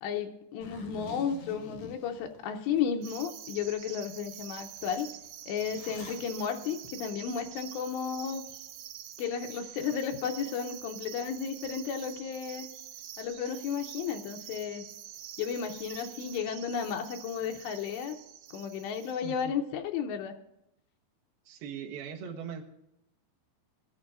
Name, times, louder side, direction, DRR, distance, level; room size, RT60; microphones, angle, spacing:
voice 1, 0.0-5.1 5.5-8.4 9.2-12.7 13.2-14.9 15.4-18.2 18.5-20.4, left 7 dB, 85° left, 4 dB, 2.9 m, -33 dB
Zipper (clothing), 0.6-2.8 3.3-3.4 3.9-4.0 4.3-6.3, left 3 dB, 60° left, 1.8 m, -47 dB
sound 1, 3.0-19.4, right 11 dB, 85° right, 2.0 m, -46 dB
voice 2, 19.2-19.5 21.5-22.6, right 7 dB, 70° right, 3 dB, 2.9 m, -40 dB
22.0 x 11.0 x 2.5 m, 0.84 s
omnidirectional pair, 4.9 m